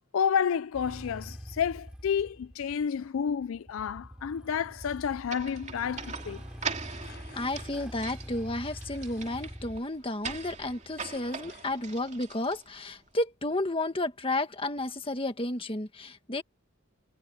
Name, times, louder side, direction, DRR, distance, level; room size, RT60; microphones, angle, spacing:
voice 1, 0.1-6.4, left 7 dB, 70° left, 0.4 m, -30 dB
Motorcycle / Engine starting, 0.7-9.8, equal, 5° right, 6.4 m, -45 dB
sound 1, 5.3-12.9, right 5 dB, 35° right, 2.7 m, -41 dB
sound 2, 6.4-7.7 8.5-9.6 9.9-11.7, left 6 dB, 55° left, 6.6 m, -56 dB
voice 2, 7.3-16.4, left 2 dB, 25° left, 1.7 m, -32 dB
head